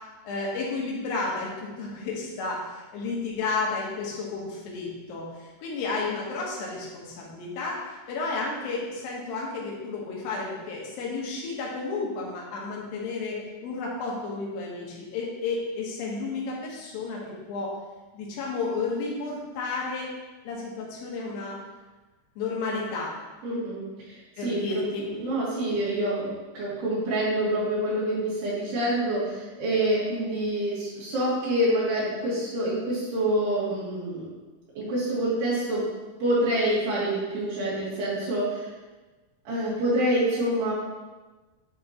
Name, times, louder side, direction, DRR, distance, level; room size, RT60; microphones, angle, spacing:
voice 1, 0.2-17.2 17.5-17.7 18.1-20.1 20.4-21.6 22.4-23.1 24.4-25.0, left 3 dB, 70° left, -3 dB, 3.0 m, -32 dB
voice 2, 23.4-26.3 26.5-34.3 34.8-35.9 36.2-38.7 39.5-40.7, right 1 dB, 85° right, -9 dB, 4.7 m, -27 dB
11.0 x 4.6 x 3.0 m, 1.2 s
omnidirectional pair, 4.6 m